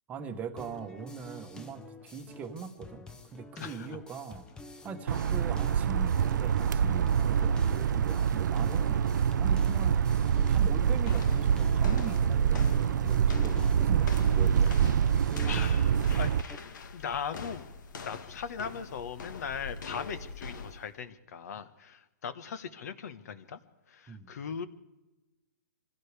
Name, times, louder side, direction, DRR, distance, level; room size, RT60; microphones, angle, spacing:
voice 1, 0.1-4.5 4.8-10.0 10.5-14.7 24.1-24.3, right 6 dB, 15° right, 6 dB, 1.2 m, -41 dB
sound 1, 0.6-16.6, left 2 dB, 5° left, 0.6 m, -48 dB
voice 2, 3.6-3.9 5.1-5.2 7.4-7.5 15.4-16.4 16.9-17.7 17.9-23.6 23.9-24.7, left 7 dB, 55° left, 12 dB, 1.3 m, -39 dB
sound 2, 5.1-16.4, right 8 dB, 75° right, 0.5 m, -26 dB
sound 3, 11.0-20.9, left 5 dB, 70° left, 1.6 m, -44 dB
25.5 x 16.5 x 3.4 m, 1.0 s
hypercardioid pair, 155°, 10 cm